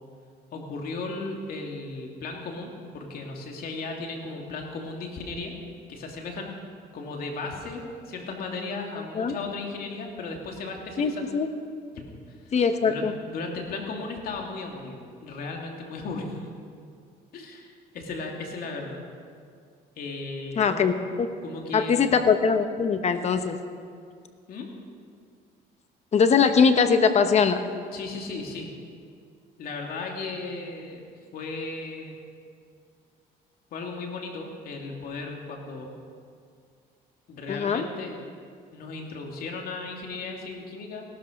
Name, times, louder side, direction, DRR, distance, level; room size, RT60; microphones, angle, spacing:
voice 1, 0.5-5.5 5.9-6.6 6.9-11.3 11.9-12.5 12.8-16.5 17.3-19.0 20.0-20.9 21.4-22.1 24.5-24.7 27.9-28.7 29.6-31.0 31.3-32.2 33.7-35.9 37.3-38.2 38.7-41.0, left 3 dB, 60° left, 1 dB, 2.6 m, -36 dB
voice 2, 11.0-11.5 12.5-13.1 20.6-21.3 21.7-23.6 26.1-27.6 37.5-37.8, left 6 dB, 40° left, 9 dB, 1.0 m, -21 dB
17.5 x 12.5 x 5.2 m, 2.2 s
cardioid pair, 110°, 17 cm